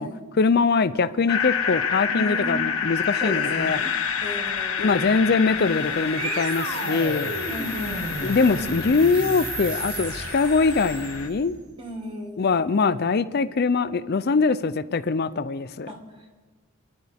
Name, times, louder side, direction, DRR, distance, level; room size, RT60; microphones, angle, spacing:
voice 1, 0.4-3.8 4.8-7.3 8.2-11.6 12.4-15.9, left 4 dB, 45° left, 0.5 m, -22 dB
sound 1, 1.3-11.3, left 7 dB, 75° left, 1.3 m, -28 dB
voice 2, 2.1-2.6 3.2-5.2 7.5-8.2 11.8-12.5 15.9-16.4, right 1 dB, 25° right, 1.8 m, -35 dB
sound 2, 5.2-11.5, right 3 dB, 80° right, 1.9 m, -33 dB
26.0 x 11.5 x 3.5 m
head